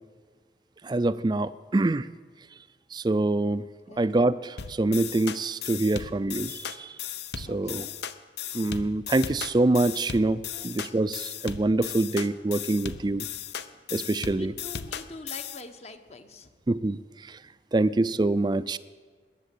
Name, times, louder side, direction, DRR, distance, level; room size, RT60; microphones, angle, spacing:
voice 1, 0.8-2.1 2.9-3.6 4.0-6.9 7.4-7.9 8.5-13.3 13.9-14.5 16.7-17.0 17.3-17.4 17.7-18.8, right 2 dB, 25° right, 16 dB, 0.4 m, -25 dB
sound 1, 4.6-15.6, left 8 dB, 70° left, 0.7 m, -36 dB
voice 2, 7.4-8.0 10.1-10.2 10.5-10.9 14.4-16.5, left 2 dB, 35° left, 8 dB, 1.0 m, -45 dB
20.5 x 7.6 x 8.4 m, 1.5 s
head